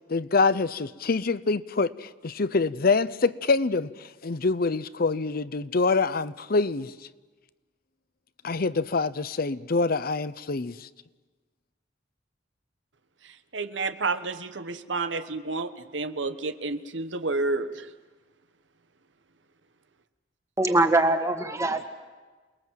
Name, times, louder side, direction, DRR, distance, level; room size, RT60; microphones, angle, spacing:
voice 1, 0.1-6.9 8.4-10.9, left 4 dB, 55° left, 0.7 m, -25 dB
voice 2, 13.2-17.9, right 3 dB, 85° right, 1.3 m, -30 dB
voice 3, 20.6-21.8, right 2 dB, 15° right, 1.8 m, -22 dB
28.5 x 21.0 x 7.7 m
head